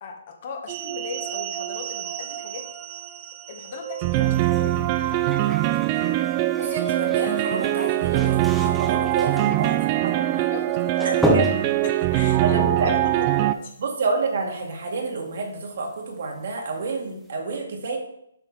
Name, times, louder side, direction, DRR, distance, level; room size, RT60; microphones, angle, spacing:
voice 1, 0.0-2.6 3.5-5.3 9.5-9.8 10.5-11.2 11.8-13.7, left 4 dB, 45° left, 2 dB, 1.6 m, -38 dB
sound 1, 0.7-13.5, right 15 dB, 30° right, 0.4 m, -23 dB
sound 2, 4.2-14.0 14.4-14.5 14.9-15.4 15.8-15.9, right 1 dB, ahead, 0.8 m, -32 dB
voice 2, 6.6-10.5 11.0-11.5 12.4-13.2 13.8-18.0, right 3 dB, 60° right, 1 dB, 2.2 m, -29 dB
8.0 x 5.9 x 4.2 m, 0.75 s
hypercardioid pair, 145°, 0 cm